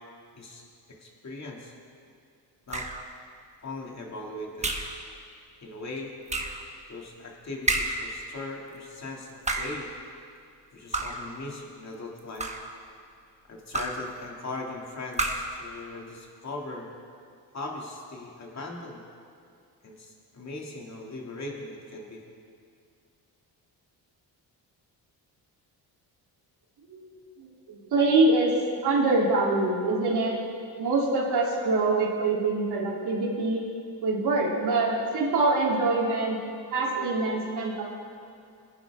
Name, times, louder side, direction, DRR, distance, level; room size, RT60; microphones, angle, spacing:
voice 1, 0.3-1.7 2.7-2.9 3.6-4.7 5.6-6.1 6.9-9.9 10.7-12.5 13.5-16.9 17.5-19.0 19.8-22.2, left 2 dB, 40° left, -1 dB, 2.6 m, -39 dB
sound 1, 2.7-3.1 4.6-5.0 6.3-6.7 7.7-8.1 9.3-9.9 10.9-11.3 12.2-12.8 13.7-14.1 15.1-15.6, right 2 dB, 15° right, 1.2 m, -30 dB
voice 2, 27.4-28.5 28.8-30.3 30.8-33.6 34.0-36.4 36.7-37.8, right 3 dB, 75° right, -4 dB, 3.3 m, -24 dB
21.0 x 10.5 x 3.7 m, 2.4 s
cardioid pair, 105°, 40 cm